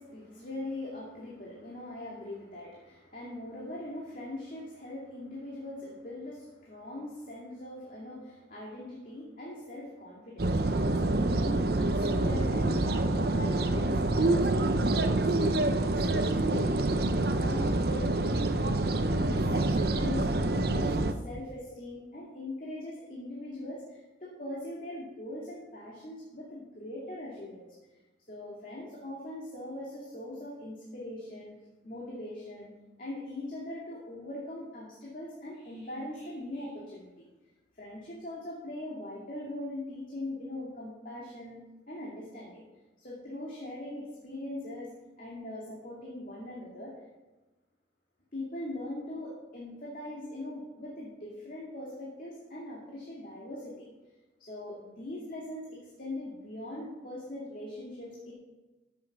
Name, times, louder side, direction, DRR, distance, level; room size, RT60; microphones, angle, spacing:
voice 1, 0.0-10.5 10.9-18.7 19.1-27.7 28.3-31.5 31.8-32.7 33.0-37.1 37.8-41.6 41.9-42.6 43.0-44.9 45.2-46.9 48.3-53.9 54.4-58.3, left 1 dB, 50° left, -4 dB, 2.4 m, -41 dB
sound 1, 10.4-21.1, right 2 dB, 60° right, 0.8 m, -27 dB
14.5 x 7.3 x 6.0 m, 1.1 s
head